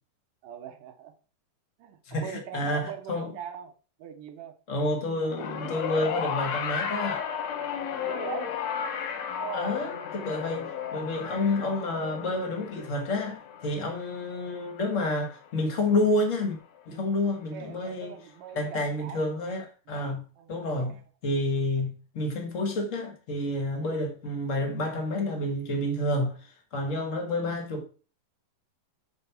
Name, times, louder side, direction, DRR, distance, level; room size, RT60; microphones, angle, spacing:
voice 1, 0.4-1.2 1.8-4.6 8.0-8.6 9.4-9.8 17.5-19.3 20.1-21.0, right 8 dB, 75° right, 2.4 m, -41 dB
voice 2, 2.1-3.3 4.7-7.3 9.5-16.6 16.9-18.1 18.5-20.2 20.5-21.0 21.2-27.9, left 2 dB, 50° left, 0.9 m, -29 dB
sound 1, 5.3-15.7 16.8-16.9, left 8 dB, 65° left, 1.8 m, -34 dB
7.3 x 4.5 x 5.7 m
omnidirectional pair, 3.9 m